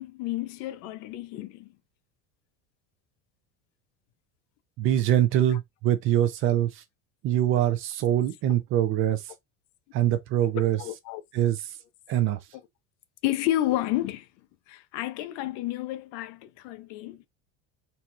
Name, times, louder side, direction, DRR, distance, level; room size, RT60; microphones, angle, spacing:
voice 1, 0.0-1.7 10.5-11.2 13.2-14.3 14.7-17.3, left 14 dB, 55° left, 0.5 m, -31 dB
voice 2, 4.8-6.8 7.2-9.2 9.9-10.8 11.3-11.6 12.1-12.4, right 11 dB, 40° right, 0.5 m, -24 dB
4.0 x 2.3 x 2.9 m
cardioid pair, 155°, 33 cm